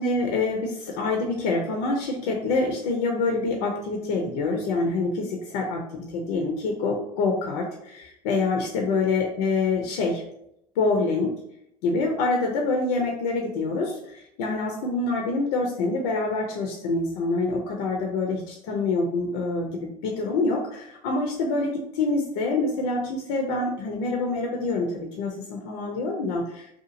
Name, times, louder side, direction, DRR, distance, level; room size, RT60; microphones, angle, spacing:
voice 1, 0.0-10.2 10.8-11.3 11.8-18.4 18.7-26.8, left 3 dB, 65° left, 1 dB, 0.6 m, -26 dB
2.8 x 2.3 x 2.5 m, 0.77 s
hypercardioid pair, 80°, 21 cm